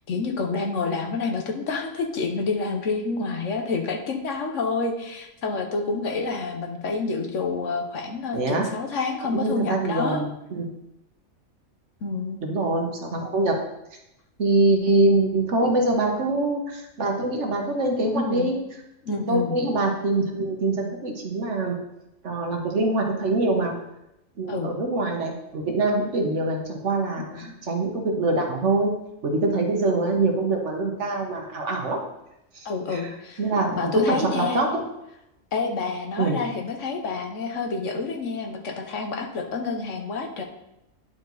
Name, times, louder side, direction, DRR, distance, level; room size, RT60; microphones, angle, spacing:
voice 1, 0.1-10.2 12.0-12.4 18.1-18.5 19.1-19.6 24.5-24.7 27.2-27.5 32.6-33.4 33.7-34.6 35.5-40.4, left 4 dB, 65° left, 3 dB, 1.2 m, -28 dB
voice 2, 8.3-8.7 9.3-10.7 12.4-13.6 14.4-18.5 19.1-21.8 22.2-23.8 24.4-28.9 29.2-32.0 32.5-33.0 33.4-34.8 36.2-36.4, right 2 dB, 60° right, 1 dB, 1.5 m, -24 dB
10.5 x 4.6 x 4.0 m, 0.87 s
omnidirectional pair, 1.4 m